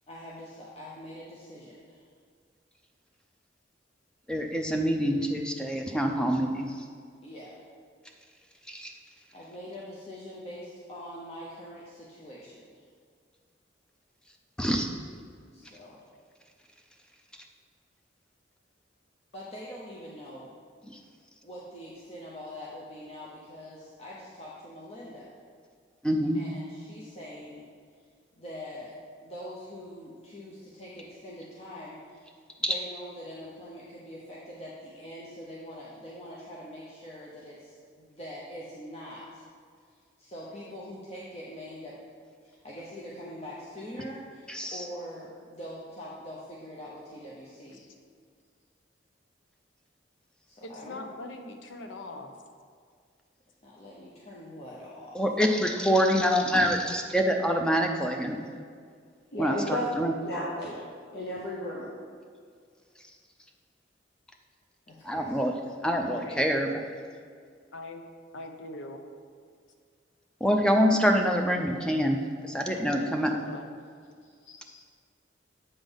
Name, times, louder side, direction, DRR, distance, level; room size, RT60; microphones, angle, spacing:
voice 1, 0.1-2.1 7.2-7.6 9.3-12.7 15.5-16.1 19.3-20.5 21.4-25.3 26.3-27.7 28.4-39.4 39.9-42.0 42.4-47.9 50.5-51.1 53.6-55.2 64.9-65.5 70.5-70.6 74.2-74.9, equal, 30° left, -6 dB, 0.8 m, -44 dB
voice 2, 4.3-6.8 8.7-8.9 14.6-14.9 20.9-21.0 26.0-26.4 32.6-32.7 44.5-44.8 55.1-58.4 59.4-60.1 65.0-65.5 65.8-66.8 70.4-72.2 72.4-73.3, equal, 5° left, 3 dB, 0.5 m, -26 dB
voice 3, 50.6-52.3 66.0-66.4 67.7-68.1 68.3-69.0 72.7-73.6 74.5-74.9, left 2 dB, 80° left, 5 dB, 0.7 m, -42 dB
voice 4, 59.3-59.9 60.2-60.8 61.1-61.9, left 1 dB, 60° left, -6 dB, 0.9 m, -33 dB
8.2 x 3.8 x 5.2 m, 2.1 s
head